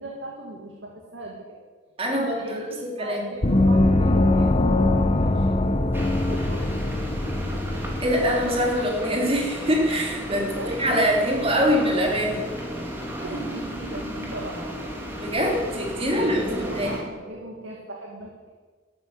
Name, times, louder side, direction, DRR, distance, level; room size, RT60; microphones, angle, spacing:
voice 1, 0.0-1.6 2.1-6.7 10.3-11.6 13.2-14.7 15.9-18.3, right 1 dB, 85° right, 0 dB, 2.1 m, -38 dB
voice 2, 2.0-2.6 3.0-3.2 8.0-10.5 10.8-12.4 15.2-16.5 16.7-16.9, equal, 30° right, 0 dB, 3.3 m, -23 dB
Gong, 3.4-8.7, left 2 dB, 35° left, 0.8 m, -22 dB
sound 1, 5.9-17.0, equal, 10° right, 2.6 m, -34 dB
13.0 x 11.5 x 8.0 m, 1.5 s
head